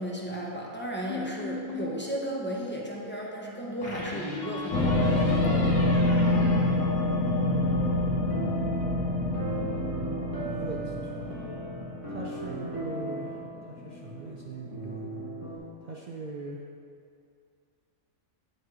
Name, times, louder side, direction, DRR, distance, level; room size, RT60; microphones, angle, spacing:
voice 1, 0.0-5.8, equal, 15° left, -3 dB, 0.5 m, -34 dB
sound 1, 1.1-2.0 3.8-7.6, left 2 dB, 35° left, 1.2 m, -37 dB
sound 2, 4.7-14.0 14.6-14.7, left 2 dB, 85° left, 1.2 m, -27 dB
voice 2, 7.4-7.9 10.4-11.4 12.1-13.3 13.8-15.2 15.9-16.6, right 3 dB, 80° right, -2 dB, 0.4 m, -40 dB
sound 3, 8.1-15.6, right 3 dB, 15° right, 1.0 m, -38 dB
8.9 x 3.1 x 4.7 m, 2.3 s
omnidirectional pair, 1.4 m